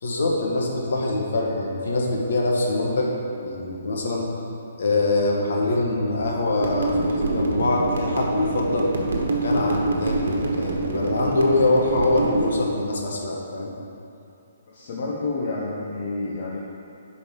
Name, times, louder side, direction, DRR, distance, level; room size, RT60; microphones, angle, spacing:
voice 1, 0.0-4.3 4.8-8.9 9.3-13.7, left 2 dB, 70° left, -2 dB, 1.3 m, -24 dB
sound 1, 6.6-12.5, right 2 dB, 75° right, 1.2 m, -26 dB
voice 2, 14.7-16.6, left 3 dB, 45° left, -3 dB, 0.9 m, -29 dB
5.1 x 5.1 x 6.4 m, 2.7 s
hypercardioid pair, 160°, 0 cm